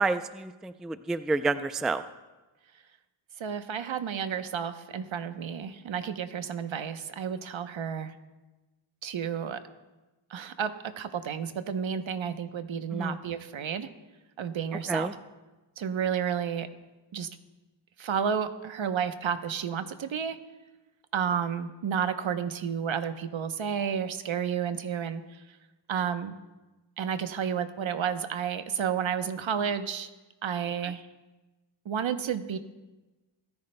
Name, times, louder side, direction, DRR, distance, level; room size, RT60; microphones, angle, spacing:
voice 1, 0.0-2.0 12.9-13.2 14.9-15.1, right 3 dB, ahead, 11 dB, 0.3 m, -29 dB
voice 2, 3.4-8.1 9.0-9.6 10.3-13.9 14.4-15.1 15.8-16.7 17.1-17.3 18.0-20.4 21.1-25.4 25.9-26.4 27.0-30.1 30.4-31.0 31.8-32.6, right 7 dB, 70° right, 10 dB, 0.9 m, -31 dB
25.5 x 9.6 x 2.2 m, 1.1 s
cardioid pair, 55°, 49 cm